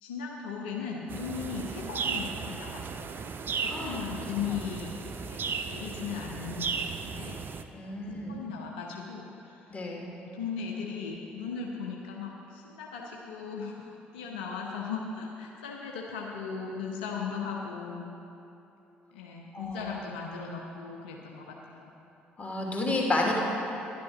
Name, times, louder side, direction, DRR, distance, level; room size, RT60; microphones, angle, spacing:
voice 1, 0.0-3.2 3.6-7.4 7.8-7.9 8.3-9.8 10.3-18.1 19.1-21.9, left 6 dB, 80° left, -1 dB, 0.8 m, -37 dB
sound 1, 1.1-7.6, right 5 dB, 45° right, 0.6 m, -35 dB
voice 2, 3.6-4.0 7.7-8.4 9.7-10.1 19.5-19.9 22.4-23.3, left 2 dB, 30° left, -2 dB, 2.6 m, -31 dB
11.5 x 9.5 x 5.0 m, 3.0 s
hypercardioid pair, 50°, 5 cm